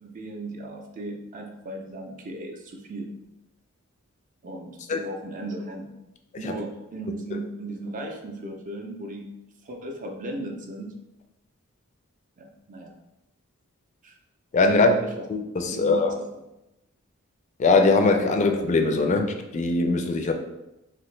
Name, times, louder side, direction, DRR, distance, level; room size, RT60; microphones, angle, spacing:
voice 1, 0.0-3.1 4.4-5.9 6.4-9.3 9.6-10.9 12.4-12.9 14.0-14.1 14.7-15.1 15.6-16.3, right 2 dB, 40° right, 3 dB, 0.4 m, -36 dB
voice 2, 14.5-15.0 15.3-16.2 17.6-20.3, left 3 dB, 35° left, 5 dB, 0.3 m, -21 dB
2.9 x 2.5 x 3.1 m, 0.93 s
head